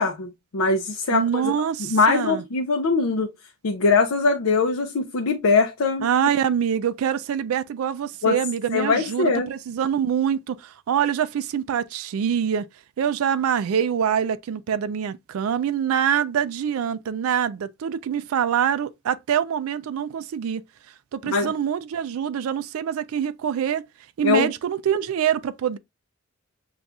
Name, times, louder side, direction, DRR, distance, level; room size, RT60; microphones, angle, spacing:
voice 1, 0.0-1.5 1.8-3.3 3.6-6.1 8.2-8.4 8.7-9.5 21.3-21.5 24.2-24.5, left 4 dB, 75° left, 0.5 m, -22 dB
voice 2, 1.1-2.4 6.0-12.7 13.0-20.6 21.1-23.9 24.2-25.8, right 8 dB, 75° right, 0.3 m, -25 dB
6.7 x 2.4 x 2.3 m
head